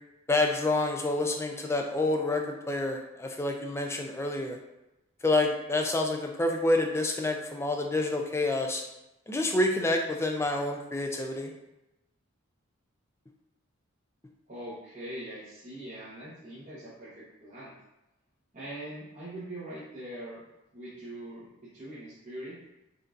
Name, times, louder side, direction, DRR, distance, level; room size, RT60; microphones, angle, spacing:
voice 1, 0.3-4.6 5.2-8.8 9.3-11.5, left 2 dB, 10° left, 3 dB, 0.3 m, -28 dB
voice 2, 14.5-17.8 18.5-20.4 20.7-22.6, right 1 dB, 35° right, -11 dB, 0.9 m, -42 dB
5.2 x 2.5 x 2.5 m, 0.93 s
head